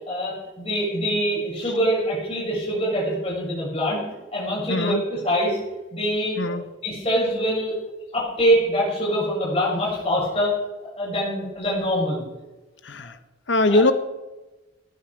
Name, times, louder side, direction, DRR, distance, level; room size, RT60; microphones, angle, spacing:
voice 1, 0.0-4.0 4.3-5.6 5.9-6.5 6.8-7.7 8.1-10.5 10.8-12.2 13.7-13.8, equal, 30° left, -4 dB, 6.3 m, -24 dB
voice 2, 4.7-5.0 6.4-6.6 12.8-13.2 13.5-13.9, left 2 dB, 75° left, 11 dB, 1.1 m, -21 dB
17.5 x 10.5 x 4.7 m, 1.1 s
head